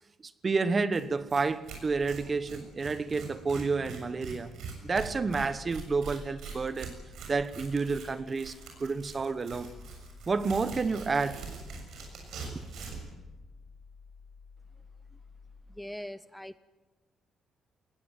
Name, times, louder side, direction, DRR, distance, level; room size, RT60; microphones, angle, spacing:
voice 1, 0.4-4.5 4.8-6.9 7.3-8.5 8.8-9.7 10.3-11.4 12.5-12.6, right 4 dB, 35° right, 1.3 m, -30 dB
Tearing, 0.9-1.0 1.3-1.4 1.7-13.1, right 5 dB, 80° right, 6.8 m, -43 dB
sound 1, 9.7-15.6, left 5 dB, 50° left, 2.1 m, -53 dB
voice 2, 15.7-16.6, left 1 dB, 5° left, 0.7 m, -41 dB
21.0 x 18.0 x 9.3 m
cardioid pair, 90°, 0 cm